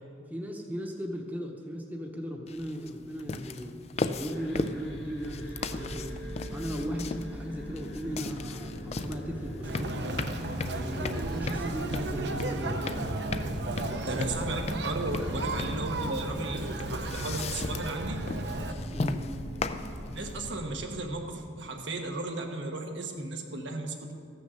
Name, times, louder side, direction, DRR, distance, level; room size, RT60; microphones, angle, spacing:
voice 1, 0.3-3.8 4.2-6.1 6.5-10.1 10.6-13.0 13.6-14.2 15.0-15.1 18.9-19.2, equal, 10° right, 1 dB, 0.9 m, -37 dB
sound 1, 2.5-20.5, left 3 dB, 35° left, 0.3 m, -37 dB
sound 2, 3.9-21.4, equal, 70° left, 1.8 m, -40 dB
Conversation, 9.6-18.7, right 2 dB, 65° right, 0.8 m, -35 dB
voice 2, 14.0-18.2 20.1-24.1, right 2 dB, 80° right, 3 dB, 1.3 m, -35 dB
15.0 x 6.4 x 6.7 m, 2.4 s
head